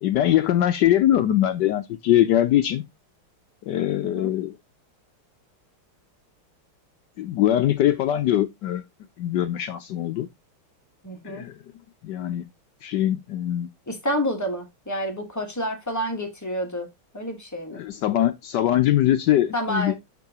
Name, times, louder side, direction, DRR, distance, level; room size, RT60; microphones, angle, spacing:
voice 1, 0.0-2.8 3.7-4.5 7.2-8.8 9.2-10.3 11.2-11.6 12.0-12.5 12.8-13.7 17.7-19.9, left 12 dB, 75° left, 1.0 m, -22 dB
voice 2, 11.0-11.4 13.9-16.9 17.1-17.8 19.5-19.9, equal, 10° left, 1.1 m, -29 dB
6.6 x 6.0 x 2.8 m
omnidirectional pair, 2.4 m